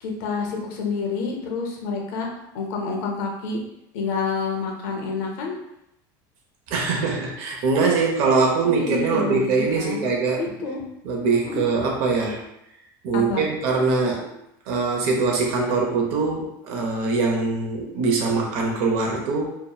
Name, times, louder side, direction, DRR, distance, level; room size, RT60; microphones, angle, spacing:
voice 1, 0.0-2.3 2.5-3.6 3.9-5.6 8.6-10.0 10.4-10.8 11.4-11.7 13.1-13.5, left 4 dB, 75° left, 1 dB, 0.6 m, -28 dB
voice 2, 6.7-10.4 11.0-12.4 13.0-14.3 14.7-19.5, right 4 dB, 60° right, 0 dB, 0.6 m, -22 dB
2.8 x 2.0 x 2.2 m, 0.82 s
supercardioid pair, 145°, 10 cm